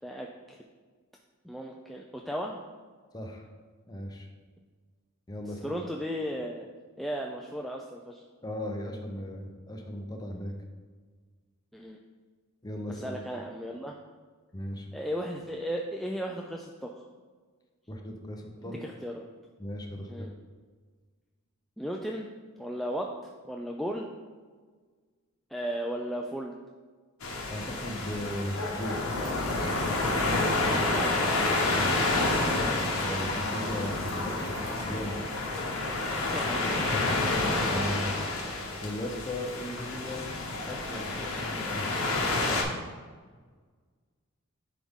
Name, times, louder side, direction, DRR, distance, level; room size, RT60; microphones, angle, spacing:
voice 1, 0.0-0.6 1.4-2.6 5.5-6.7 7.0-8.2 11.7-12.0 12.9-13.9 14.9-17.1 18.7-19.3 20.1-20.3 21.8-22.3 22.6-24.1 25.5-26.5 32.5-32.8 35.8-37.4, equal, ahead, 0 dB, 0.3 m, -36 dB
voice 2, 3.1-3.5 3.9-4.3 5.3-5.7 8.4-10.5 12.6-13.2 14.5-14.9 17.9-18.9 19.6-20.3 27.5-29.1 31.7-32.0 32.5-34.5 34.9-35.2 37.7-38.2 38.8-40.3 40.7-41.9, left 1 dB, 20° left, 2 dB, 0.7 m, -37 dB
sound 1, 27.2-42.6, left 2 dB, 70° left, 1.1 m, -29 dB
Trickle dribble / Fill (with liquid), 29.2-36.3, left 2 dB, 40° left, 1.9 m, -43 dB
10.0 x 3.6 x 3.6 m, 1.5 s
head